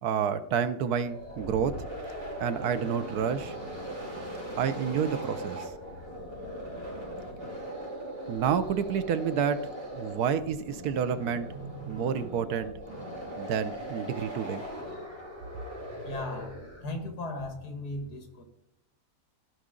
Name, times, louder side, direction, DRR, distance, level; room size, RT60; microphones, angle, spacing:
voice 1, 0.0-1.7 2.4-3.5 4.6-5.6 8.3-9.7 9.9-11.5 11.9-12.7 13.4-14.6, right 7 dB, 70° right, 12 dB, 1.1 m, -29 dB
sound 1, 1.0-17.0, equal, 35° right, 3.5 m, -39 dB
voice 2, 16.0-16.5 16.8-18.4, left 2 dB, 70° left, 5 dB, 2.2 m, -36 dB
14.5 x 5.4 x 3.8 m, 0.80 s
omnidirectional pair, 1.8 m